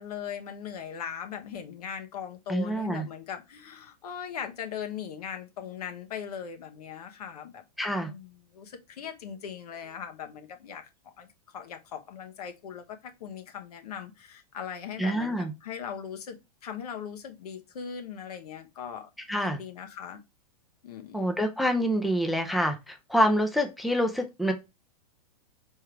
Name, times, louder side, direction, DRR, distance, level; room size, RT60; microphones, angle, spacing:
voice 1, 0.0-7.6 8.0-19.1 19.4-20.2 20.8-21.3, left 8 dB, 80° left, 1.2 m, -39 dB
voice 2, 2.5-3.0 7.8-8.1 15.0-15.5 19.3-19.6 21.1-24.5, equal, ahead, 0.4 m, -26 dB
4.5 x 3.5 x 3.1 m
hypercardioid pair, 145°, 20 cm